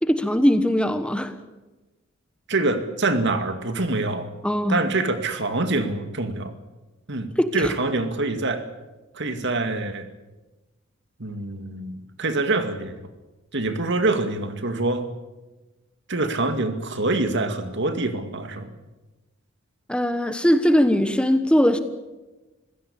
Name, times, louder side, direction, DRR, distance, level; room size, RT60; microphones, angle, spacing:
voice 1, 0.0-1.3 4.4-4.8 7.4-7.5 19.9-21.8, equal, 5° left, 9 dB, 1.1 m, -20 dB
voice 2, 2.5-4.3 4.7-6.5 7.1-8.6 9.1-10.1 11.2-13.1 13.5-15.1 16.1-18.7, right 2 dB, 60° right, 8 dB, 2.3 m, -25 dB
25.5 x 16.5 x 8.6 m, 1.1 s
head